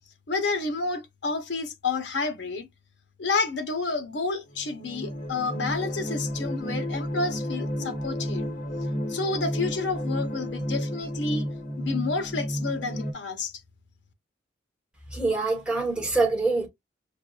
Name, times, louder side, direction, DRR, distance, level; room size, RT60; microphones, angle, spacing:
voice 1, 0.3-2.7 3.2-8.4 9.1-11.5 11.8-13.5, left 3 dB, 75° left, 0.7 m, -30 dB
sound 1, 4.5-13.1, equal, 45° left, 0.9 m, -31 dB
voice 2, 15.1-16.7, right 3 dB, 5° right, 1.2 m, -25 dB
5.2 x 2.2 x 2.3 m
head